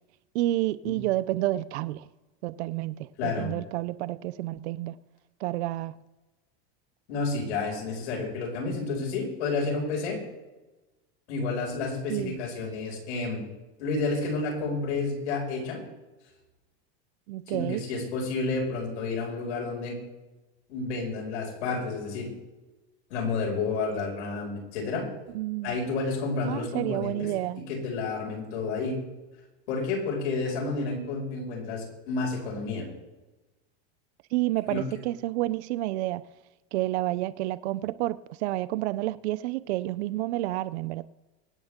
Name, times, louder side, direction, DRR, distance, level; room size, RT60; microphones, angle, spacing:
voice 1, 0.3-2.1 2.4-5.0 5.4-6.0 12.1-12.4 17.3-17.8 25.3-25.8 26.4-27.6 34.3-36.3 36.7-41.0, right 16 dB, 75° right, 0.7 m, -30 dB
voice 2, 3.2-3.5 7.1-10.2 11.3-13.4 13.8-15.8 17.5-20.0 20.7-22.3 23.1-25.1 25.6-27.3 27.7-29.0 29.7-32.9 34.7-34.8, left 3 dB, 85° left, 5.9 m, -30 dB
24.5 x 9.0 x 3.7 m
supercardioid pair, 160°, 33 cm